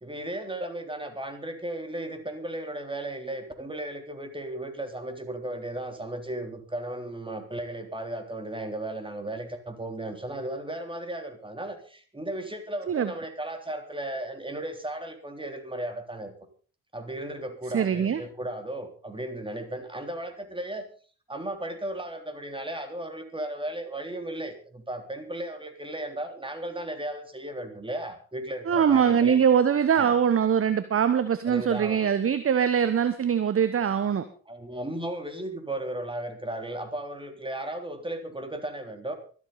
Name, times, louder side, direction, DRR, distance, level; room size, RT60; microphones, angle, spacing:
voice 1, 0.0-16.3 16.9-20.9 21.3-29.4 29.9-30.2 31.5-32.1 34.5-39.1, right 1 dB, 15° right, 6 dB, 3.5 m, -35 dB
voice 2, 17.7-18.2 28.7-34.3, right 8 dB, 35° right, 13 dB, 1.1 m, -22 dB
24.5 x 8.5 x 4.1 m, 0.41 s
hypercardioid pair, 50°, 40 cm